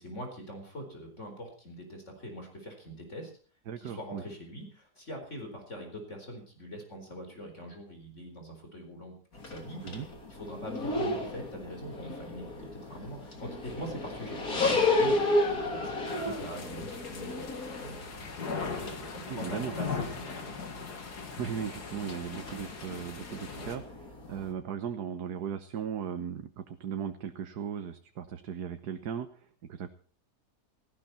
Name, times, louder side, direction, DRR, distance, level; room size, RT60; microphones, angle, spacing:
voice 1, 0.0-3.3 3.8-9.8 10.3-20.5, equal, 45° left, 4 dB, 4.7 m, -43 dB
voice 2, 3.7-4.2 9.8-10.1 19.2-19.7 21.4-29.9, right 8 dB, 85° right, 7 dB, 1.6 m, -37 dB
sound 1, 9.3-24.5, left 2 dB, 65° left, 3.7 m, -34 dB
sound 2, 16.1-23.8, left 5 dB, 80° left, 2.7 m, -39 dB
18.0 x 16.5 x 4.3 m, 0.43 s
omnidirectional pair, 1.7 m